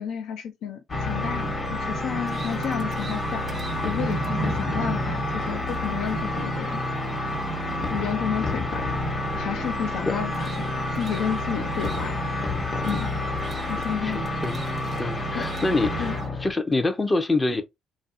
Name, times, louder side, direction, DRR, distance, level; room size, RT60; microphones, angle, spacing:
voice 1, 0.0-3.5 3.8-6.8 7.8-8.9 9.3-12.2 12.8-13.1 13.7-14.2 15.3-15.5 16.0-16.1, left 8 dB, 75° left, 0.4 m, -31 dB
sound 1, 0.9-16.5, left 2 dB, 50° left, 1.1 m, -29 dB
sound 2, 1.0-16.3, right 5 dB, 45° right, 0.4 m, -37 dB
voice 2, 14.0-14.6 15.0-17.6, left 2 dB, 25° left, 0.6 m, -26 dB
2.6 x 2.0 x 2.5 m
supercardioid pair, 55°, 0 cm